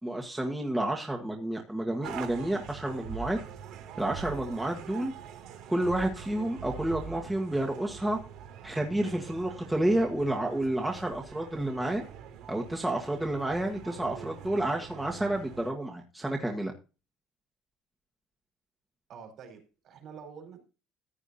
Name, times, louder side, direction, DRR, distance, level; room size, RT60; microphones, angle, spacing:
voice 1, 0.0-3.4 4.0-5.1 5.7-8.2 8.6-12.0 12.5-16.7, right 1 dB, 5° right, 1.6 m, -30 dB
sound 1, 2.0-15.7, right 7 dB, 70° right, 2.5 m, -44 dB
voice 2, 19.1-20.6, right 6 dB, 50° right, 4.5 m, -47 dB
15.0 x 9.6 x 2.8 m
cardioid pair, 135°, 0 cm